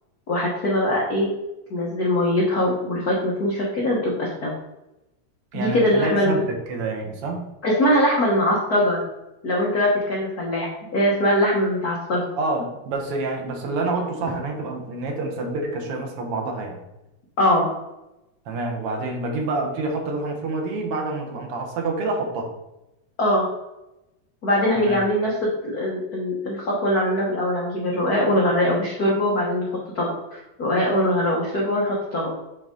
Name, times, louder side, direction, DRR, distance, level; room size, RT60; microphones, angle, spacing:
voice 1, 0.3-1.3 1.7-4.5 5.5-6.4 7.6-9.0 9.4-12.2 17.4-17.7 23.2-23.5 24.4-25.3 25.6-29.7 29.9-32.3, left 1 dB, 80° left, -4 dB, 0.8 m, -22 dB
voice 2, 5.5-7.5 12.4-16.8 18.5-22.5 24.8-25.0, right 3 dB, 60° right, 2 dB, 1.7 m, -27 dB
7.6 x 3.9 x 3.7 m, 0.94 s
omnidirectional pair, 3.4 m